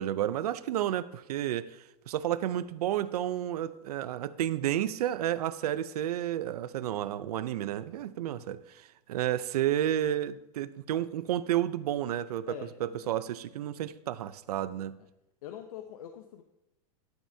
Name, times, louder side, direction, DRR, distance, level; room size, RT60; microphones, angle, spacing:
voice 1, 0.0-15.0, right 11 dB, 85° right, 15 dB, 0.6 m, -31 dB
voice 2, 12.5-13.1 15.0-15.1 15.4-16.4, left 10 dB, 75° left, 6 dB, 0.8 m, -45 dB
11.5 x 9.0 x 2.8 m, 0.91 s
supercardioid pair, 170°, 19 cm